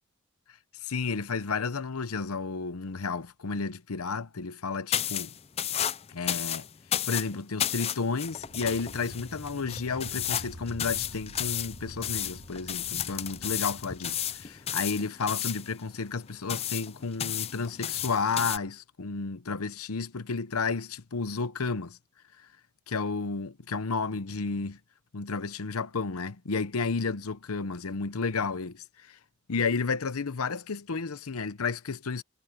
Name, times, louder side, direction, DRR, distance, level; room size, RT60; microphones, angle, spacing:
voice 1, 0.8-5.3 6.1-6.7 7.1-22.0 22.4-22.5 22.9-24.8 25.1-29.2 29.5-32.2, left 4 dB, 85° left, 0.8 m, -32 dB
sound 1, 4.9-18.6, left 10 dB, 30° left, 0.4 m, -33 dB
sound 2, 8.2-14.7, equal, 70° right, 6.1 m, -47 dB
head